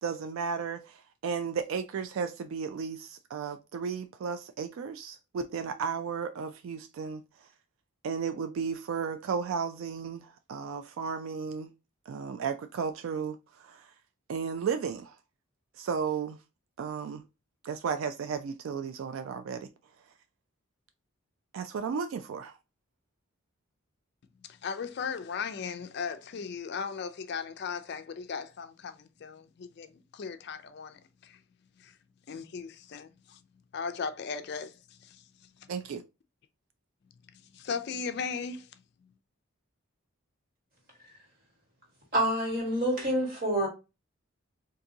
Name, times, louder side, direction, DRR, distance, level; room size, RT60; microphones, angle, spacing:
voice 1, 0.0-7.2 8.0-11.7 12.1-13.9 14.3-15.2 15.8-16.4 16.8-17.2 17.6-19.7 21.5-22.5 35.7-36.0, right 6 dB, 75° right, 0.3 m, -34 dB
voice 2, 24.5-31.4 31.8-31.9 32.3-33.4 33.7-35.2 37.5-38.7, left 5 dB, 50° left, 0.4 m, -37 dB
voice 3, 42.1-43.7, right 1 dB, 45° right, 1.6 m, -27 dB
3.7 x 2.6 x 2.7 m
head